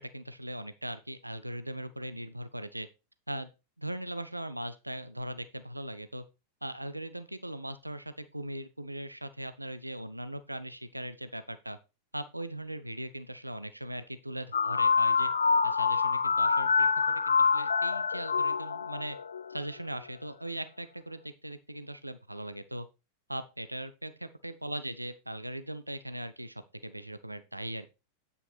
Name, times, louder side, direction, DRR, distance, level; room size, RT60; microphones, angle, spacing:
voice 1, 0.0-2.9 3.3-3.5 3.8-6.2 6.6-11.8 12.1-15.3 15.6-19.2 19.5-22.9 23.3-27.9, right 1 dB, 85° right, 12 dB, 0.8 m, -39 dB
sound 1, 14.5-19.6, left 5 dB, 70° left, 0.5 m, -26 dB
9.6 x 5.5 x 4.3 m, 0.27 s
figure-of-eight pair, 90°, 0 cm